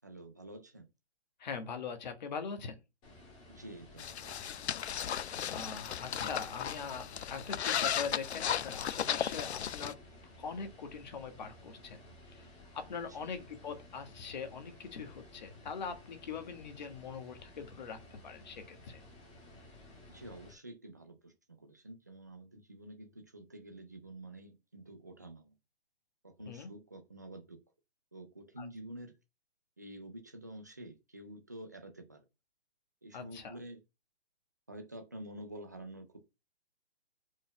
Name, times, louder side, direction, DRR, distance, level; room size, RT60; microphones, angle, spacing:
voice 1, 0.0-0.9 3.5-4.5 13.0-13.1 20.1-25.5 26.2-27.6 28.1-29.1 29.8-32.2 33.0-33.8 34.7-36.2, right 1 dB, 15° right, 0.4 m, -49 dB
voice 2, 1.4-2.8 5.5-10.0 10.4-12.0 12.3-12.5 12.7-19.0 26.5-26.7 28.6-28.7 33.1-33.6, left 5 dB, 45° left, 1.4 m, -42 dB
sound 1, 3.0-20.5, left 1 dB, 15° left, 1.9 m, -55 dB
sound 2, 4.0-9.9, left 9 dB, 85° left, 0.6 m, -35 dB
5.1 x 4.1 x 5.7 m
hypercardioid pair, 170°, 32 cm